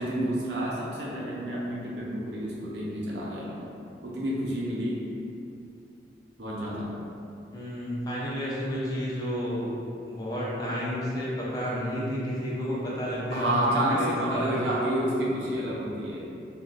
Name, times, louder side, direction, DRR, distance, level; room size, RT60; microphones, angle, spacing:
voice 1, 0.0-3.7 4.0-5.1 6.4-6.9 13.3-16.3, right 1 dB, 75° right, -6 dB, 0.6 m, -29 dB
voice 2, 7.5-14.5, equal, 20° left, -7 dB, 0.5 m, -31 dB
3.5 x 2.2 x 2.5 m, 2.6 s
head